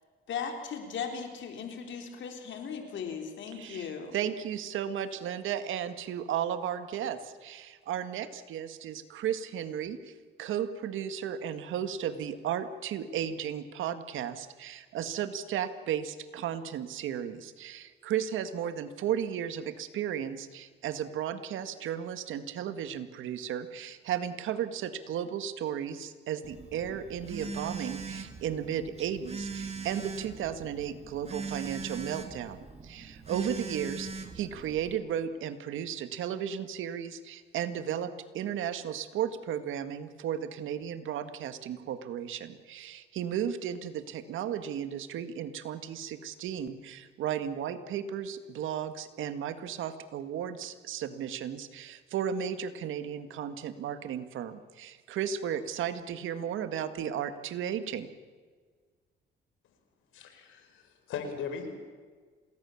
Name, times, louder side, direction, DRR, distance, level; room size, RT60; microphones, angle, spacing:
voice 1, 0.3-4.2, left 6 dB, 70° left, 4 dB, 3.8 m, -37 dB
voice 2, 3.6-10.1 10.4-32.6 32.8-58.1, right 9 dB, 85° right, 10 dB, 1.9 m, -34 dB
Telephone, 26.4-35.0, right 4 dB, 30° right, 3.2 m, -40 dB
voice 3, 60.1-61.8, left 6 dB, 85° left, 7 dB, 4.9 m, -38 dB
27.5 x 19.5 x 7.3 m, 1.5 s
cardioid pair, 90°, 20 cm